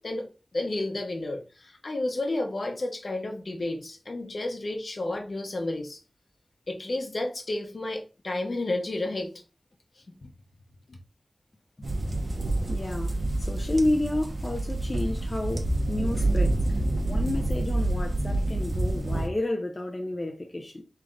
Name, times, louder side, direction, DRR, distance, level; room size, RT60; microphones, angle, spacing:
voice 1, 0.0-6.0 6.7-9.3 10.1-10.2 10.9-11.0, left 2 dB, 60° left, 1.0 m, -31 dB
sound 1, 11.8-19.3, right 1 dB, 60° right, 0.9 m, -27 dB
voice 2, 12.7-16.6 17.0-20.8, left 1 dB, 35° left, 0.6 m, -30 dB
3.7 x 3.3 x 3.7 m
wide cardioid pair, 80°, 0 cm